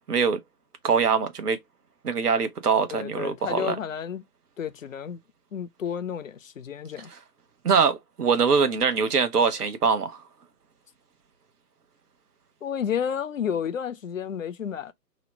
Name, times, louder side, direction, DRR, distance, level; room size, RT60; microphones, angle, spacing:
voice 1, 0.1-0.4 0.8-1.6 2.0-3.8 7.1-7.2 7.6-10.2, right 5 dB, 70° right, 0.9 m, -23 dB
voice 2, 2.9-4.2 4.6-5.2 5.5-7.1 12.6-14.9, left 8 dB, 55° left, 0.5 m, -31 dB
3.0 x 2.0 x 3.1 m
figure-of-eight pair, 150°, 48 cm